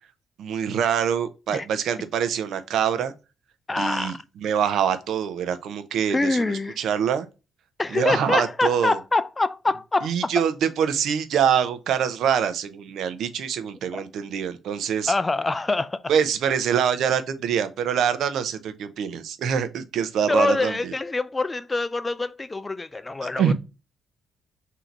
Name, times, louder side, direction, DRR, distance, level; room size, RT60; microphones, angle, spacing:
voice 1, 0.4-3.1 3.8-4.1 4.4-6.4 6.8-7.3 7.9-9.0 10.0-15.1 16.1-20.9 23.4-23.5, right 8 dB, 75° right, 0.6 m, -24 dB
voice 2, 3.7-4.2 6.1-6.8 7.8-10.3 13.9-14.1 15.1-16.0 20.2-23.5, left 3 dB, 20° left, 0.3 m, -25 dB
3.9 x 2.8 x 4.5 m
cardioid pair, 90°, 0 cm